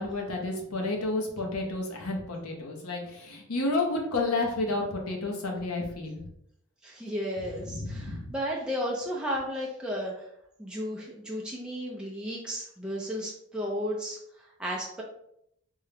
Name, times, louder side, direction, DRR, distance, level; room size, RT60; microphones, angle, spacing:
voice 1, 0.0-6.2 7.7-8.3, left 2 dB, 75° left, 1 dB, 0.8 m, -31 dB
voice 2, 6.8-10.3 10.6-15.0, equal, 5° right, -4 dB, 0.4 m, -34 dB
3.5 x 2.2 x 3.3 m, 0.75 s
head